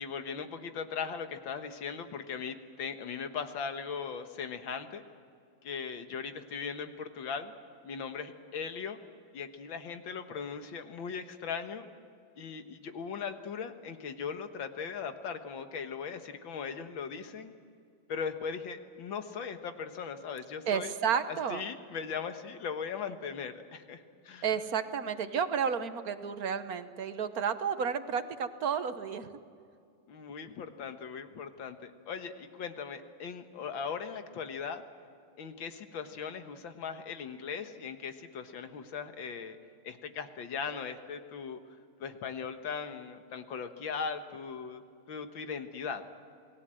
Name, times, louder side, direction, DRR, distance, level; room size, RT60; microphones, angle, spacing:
voice 1, 0.0-5.0 5.6-7.5 7.8-9.0 9.3-11.9 12.4-17.5 18.1-20.9 21.3-24.5 30.1-34.8 35.4-39.6 39.8-41.6 42.0-44.8 45.1-46.0, left 6 dB, 75° left, 7 dB, 2.1 m, -39 dB
voice 2, 20.7-21.6 24.4-29.3, right 7 dB, 55° right, 10 dB, 1.4 m, -31 dB
28.0 x 19.0 x 7.7 m, 2.3 s
omnidirectional pair, 2.1 m